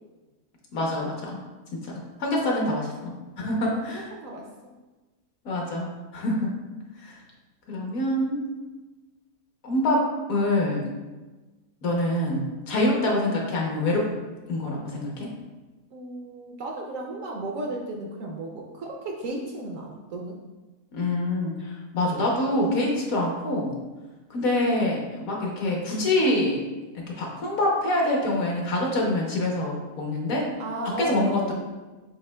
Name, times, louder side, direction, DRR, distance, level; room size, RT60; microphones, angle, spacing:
voice 1, 0.7-1.4 1.7-1.9 2.2-4.1 5.4-6.5 7.0-7.2 7.7-8.4 9.6-10.9 11.8-14.1 14.5-15.3 20.9-23.7 24.3-26.6 27.1-30.5 31.0-31.5, left 1 dB, 65° left, -1 dB, 1.2 m, -25 dB
voice 2, 3.4-4.4 15.9-20.4 30.6-31.5, right 2 dB, 70° right, 0 dB, 0.9 m, -34 dB
7.2 x 2.8 x 2.2 m, 1.2 s
omnidirectional pair, 1.7 m